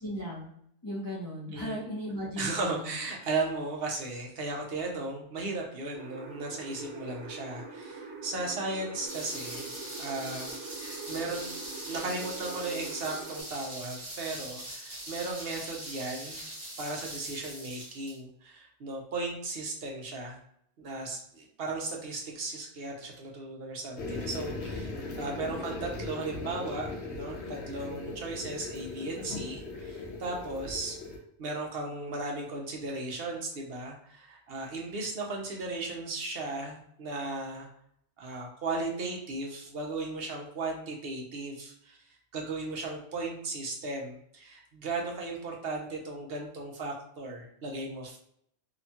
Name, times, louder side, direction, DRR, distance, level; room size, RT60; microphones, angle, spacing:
voice 1, 0.0-0.5 0.8-2.9, equal, 35° left, -4 dB, 0.3 m, -36 dB
voice 2, 2.4-9.7 10.0-10.5 10.8-11.5 11.9-16.4 16.8-20.4 20.8-31.0 31.4-37.7 38.2-42.0 42.3-48.2, right 3 dB, 65° right, 0 dB, 0.8 m, -36 dB
sound 1, 5.9-13.4, right 4 dB, 85° right, 1.0 m, -43 dB
sound 2, 9.1-18.2, right 1 dB, 30° right, 0.8 m, -42 dB
sound 3, 24.0-31.2, left 3 dB, 75° left, 0.9 m, -39 dB
2.8 x 2.2 x 2.7 m, 0.69 s
omnidirectional pair, 1.2 m